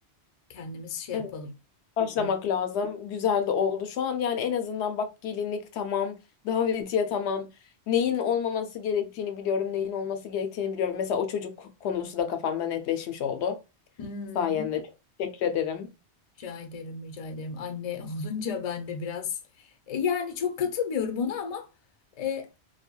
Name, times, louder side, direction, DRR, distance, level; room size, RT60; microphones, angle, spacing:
voice 1, 0.5-1.5 2.2-2.3 14.0-14.7 16.4-19.4 19.9-21.7 22.2-22.5, left 6 dB, 45° left, 0.5 m, -32 dB
voice 2, 2.0-6.2 6.4-7.5 7.9-13.6 14.4-14.8 15.2-15.9, left 7 dB, 80° left, 0.9 m, -28 dB
3.2 x 2.2 x 2.2 m
omnidirectional pair, 1.1 m